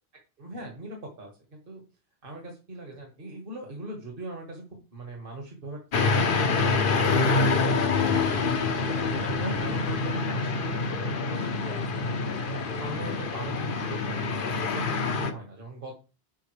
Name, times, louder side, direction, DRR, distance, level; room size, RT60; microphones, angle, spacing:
voice 1, 0.4-1.8 2.2-4.6 4.9-7.5 8.3-11.8 12.4-15.9, right 1 dB, 55° right, 0 dB, 1.9 m, -40 dB
sound 1, 5.9-15.3, left 4 dB, 55° left, 1.0 m, -26 dB
10.0 x 5.5 x 3.3 m, 0.32 s
omnidirectional pair, 1.1 m